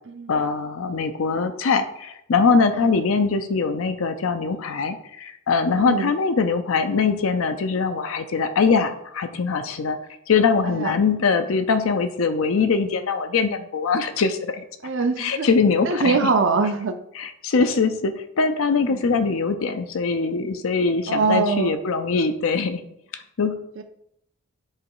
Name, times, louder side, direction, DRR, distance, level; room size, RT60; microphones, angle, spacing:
voice 1, 0.3-10.0 10.3-14.6 15.2-16.3 17.1-22.8 23.4-23.6, left 4 dB, 65° left, 9 dB, 0.5 m, -22 dB
voice 2, 5.7-6.1 10.7-10.9 14.8-15.5 15.9-17.0 18.9-19.0 21.1-21.7 23.8-23.9, right 4 dB, 55° right, 8 dB, 0.5 m, -23 dB
7.4 x 3.1 x 4.7 m, 0.75 s
head